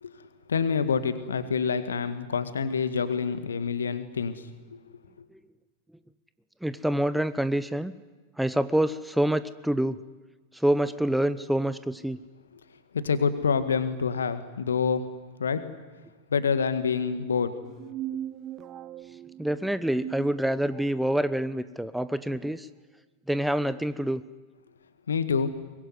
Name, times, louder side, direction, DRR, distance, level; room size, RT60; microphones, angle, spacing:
voice 1, 0.0-4.8 5.2-5.3 12.9-15.0 15.4-15.7 16.3-17.6 25.1-25.5, left 6 dB, 70° left, 11 dB, 1.9 m, -27 dB
voice 2, 6.6-7.9 8.4-10.0 10.5-12.2 19.4-22.7 23.3-24.2, right 1 dB, ahead, 14 dB, 0.9 m, -26 dB
sound 1, 17.6-21.1, right 11 dB, 30° right, 1.0 m, -39 dB
23.5 x 21.5 x 9.9 m, 1.3 s
figure-of-eight pair, 90°, 0 cm